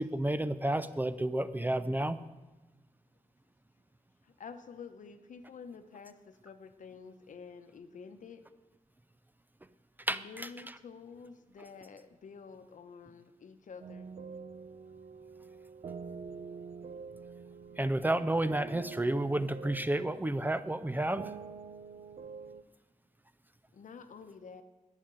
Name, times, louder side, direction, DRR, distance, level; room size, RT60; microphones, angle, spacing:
voice 1, 0.0-2.2 10.1-10.5 17.8-21.3, right 1 dB, 15° right, 13 dB, 0.4 m, -31 dB
voice 2, 4.2-8.4 10.1-14.1 23.7-24.6, left 5 dB, 75° left, 9 dB, 0.9 m, -49 dB
sound 1, 13.8-22.6, right 5 dB, 60° right, 0.5 m, -46 dB
10.5 x 9.3 x 7.6 m, 1.2 s
wide cardioid pair, 160°, 13 cm